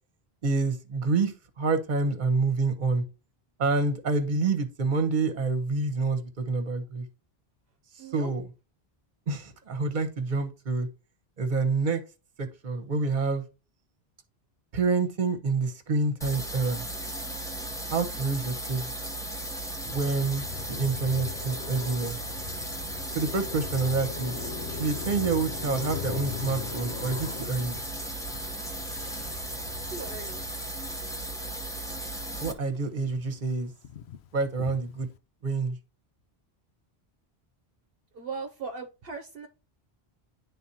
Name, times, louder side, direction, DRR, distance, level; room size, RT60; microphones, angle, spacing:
voice 1, 0.4-3.0 3.6-7.0 8.0-8.4 9.3-10.9 11.4-12.0 12.4-13.4 14.7-16.9 17.9-18.9 19.8-20.4 20.7-22.2 23.1-24.4 24.7-27.8 32.3-33.7 34.3-35.1 35.4-35.8, right 4 dB, 50° right, 1.1 m, -27 dB
voice 2, 8.0-8.3 29.8-30.4 38.1-39.5, right 4 dB, 65° right, 0.9 m, -38 dB
sound 1, 16.2-32.5, right 1 dB, 5° left, 0.8 m, -36 dB
Car passing by, 19.9-32.3 32.7-35.2, left 10 dB, 85° left, 0.9 m, -41 dB
11.0 x 3.8 x 2.8 m
omnidirectional pair, 1.1 m